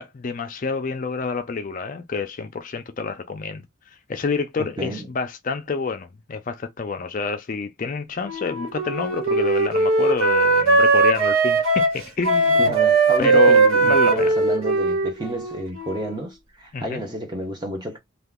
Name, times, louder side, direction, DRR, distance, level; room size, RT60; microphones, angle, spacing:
voice 1, 0.0-3.6 4.1-12.8 13.2-14.3 16.7-17.0, left 5 dB, 40° left, 0.4 m, -28 dB
voice 2, 4.6-5.1 12.6-18.0, right 1 dB, 20° right, 0.8 m, -31 dB
Wind instrument woodwind instrument, 8.2-16.3, right 3 dB, 80° right, 1.3 m, -19 dB
2.8 x 2.3 x 3.6 m
head